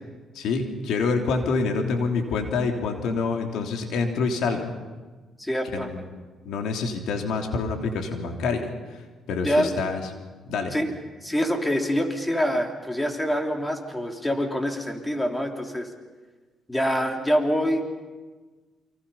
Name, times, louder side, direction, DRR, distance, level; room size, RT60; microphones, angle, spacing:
voice 1, 0.3-4.6 5.7-6.0 6.4-8.7 9.3-10.0 10.5-10.7, left 4 dB, 80° left, 3 dB, 3.2 m, -26 dB
voice 2, 5.4-5.9 9.4-9.7 10.7-10.9 11.2-15.9 16.7-17.8, equal, 10° left, 3 dB, 3.6 m, -25 dB
29.0 x 24.5 x 5.7 m, 1.3 s
cardioid pair, 90°, 0 cm